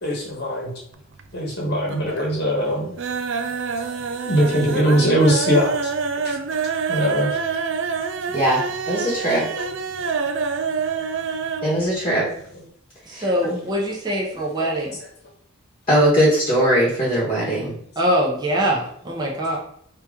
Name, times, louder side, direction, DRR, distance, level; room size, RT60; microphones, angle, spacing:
voice 1, 0.0-0.7 1.3-2.9 4.2-5.9 6.2-6.4 6.9-7.4 12.1-12.2 14.5-14.7, equal, 50° left, -2 dB, 1.2 m, -21 dB
sound 1, 0.9-1.5 1.8-2.4 2.7-11.7 12.0-12.1 12.4-12.5, right 5 dB, 55° right, 0.4 m, -26 dB
voice 2, 8.3-9.4 11.6-12.3 13.1-13.6 15.9-17.7, equal, 25° left, -7 dB, 1.3 m, -20 dB
voice 3, 13.1-15.0 18.0-19.6, equal, 20° right, -4 dB, 0.8 m, -23 dB
4.9 x 3.0 x 3.6 m, 0.68 s
head